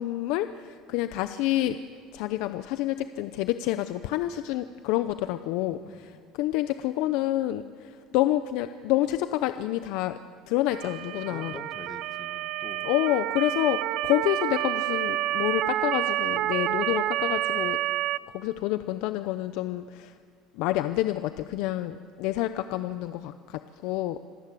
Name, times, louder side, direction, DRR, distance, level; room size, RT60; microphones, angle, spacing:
voice 1, 0.0-1.8 2.1-6.1 6.4-10.2 10.5-11.5 12.8-17.8 18.3-20.1 20.6-24.2, left 15 dB, 75° left, 11 dB, 0.7 m, -28 dB
voice 2, 5.7-6.2 11.3-12.9, left 5 dB, 25° left, 8 dB, 1.7 m, -46 dB
Motor vehicle (road) / Siren, 10.7-18.2, right 15 dB, 65° right, 0.6 m, -29 dB
26.5 x 17.0 x 8.4 m, 2.2 s
cardioid pair, 130°, 0 cm